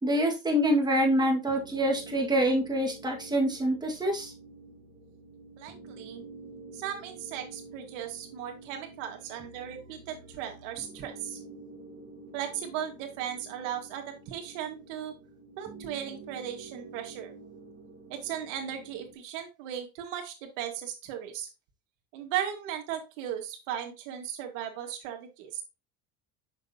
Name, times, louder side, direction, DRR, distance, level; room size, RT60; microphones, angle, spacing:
voice 1, 0.0-4.3, equal, 10° right, 0 dB, 1.8 m, -26 dB
sound 1, 0.6-19.1, right 3 dB, 25° right, 1.7 m, -49 dB
voice 2, 5.6-6.2 6.7-11.4 12.3-15.2 15.6-17.3 18.1-21.5 22.1-25.6, right 10 dB, 90° right, 4 dB, 1.8 m, -37 dB
6.3 x 6.1 x 2.8 m, 0.27 s
cardioid pair, 130°, 36 cm